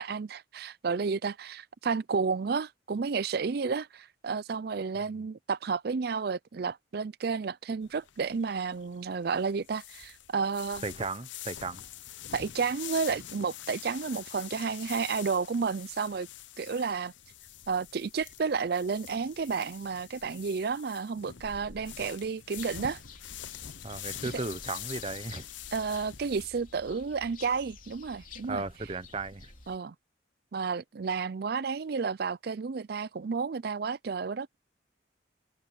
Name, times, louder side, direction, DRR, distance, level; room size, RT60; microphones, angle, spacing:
voice 1, 0.0-10.8 12.3-16.3 16.6-17.1 17.7-23.0 25.7-28.6 29.7-29.9 30.5-34.6, right 5 dB, 55° right, 0.4 m, -31 dB
sound 1, 7.8-26.5, left 11 dB, 75° left, 0.7 m, -45 dB
voice 2, 10.8-11.8 23.8-25.5 28.5-29.5, right 3 dB, 30° right, 0.9 m, -36 dB
sound 2, 22.5-29.8, left 4 dB, 45° left, 3.2 m, -50 dB
head